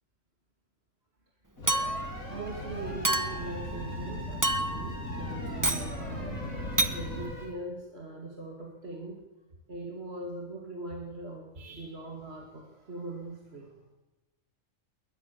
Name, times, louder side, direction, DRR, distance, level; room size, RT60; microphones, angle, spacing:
sound 1, 1.6-7.3, left 1 dB, 85° left, 4.0 m, -38 dB
sound 2, 1.6-7.5, equal, 30° left, 5.8 m, -44 dB
Chink clink, 1.7-2.2 3.0-3.5 4.4-4.9 5.6-5.9 6.8-7.0, right 2 dB, 15° right, 1.0 m, -28 dB
voice 1, 2.3-6.4 6.9-9.2 9.7-13.7, right 2 dB, 50° right, 1 dB, 2.7 m, -41 dB
21.0 x 20.5 x 7.0 m, 1.0 s
omnidirectional pair, 1.4 m